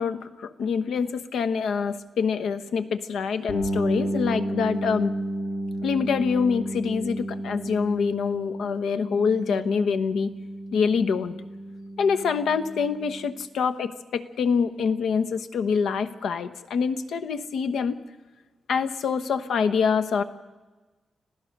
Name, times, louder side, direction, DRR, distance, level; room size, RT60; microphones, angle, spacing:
voice 1, 0.0-5.1 5.8-10.3 10.7-11.3 12.0-18.0 18.7-20.2, left 6 dB, 90° left, 10 dB, 1.1 m, -25 dB
sound 1, 3.5-13.2, right 1 dB, 40° left, 4.4 m, -32 dB
26.0 x 16.0 x 6.6 m, 1.3 s
wide cardioid pair, 165°, 0 cm